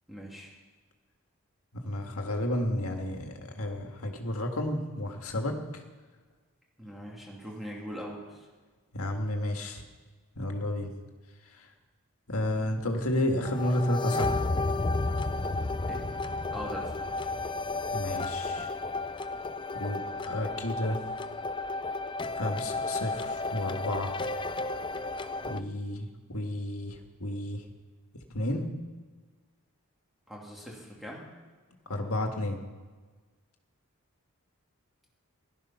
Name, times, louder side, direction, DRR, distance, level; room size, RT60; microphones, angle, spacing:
voice 1, 0.1-0.5 6.8-8.5 15.9-16.0 16.5-17.1 30.3-31.3, equal, ahead, -3 dB, 2.6 m, -41 dB
voice 2, 1.8-5.8 8.9-9.8 10.4-10.9 11.5-11.7 12.3-14.5 17.9-18.7 19.8-21.0 22.3-24.1 25.5-27.6 28.3-28.7 31.9-32.6, left 1 dB, 85° left, 3 dB, 1.9 m, -31 dB
sound 1, 13.4-25.6, left 3 dB, 20° left, 0.4 m, -32 dB
17.0 x 12.5 x 5.8 m, 1.4 s
head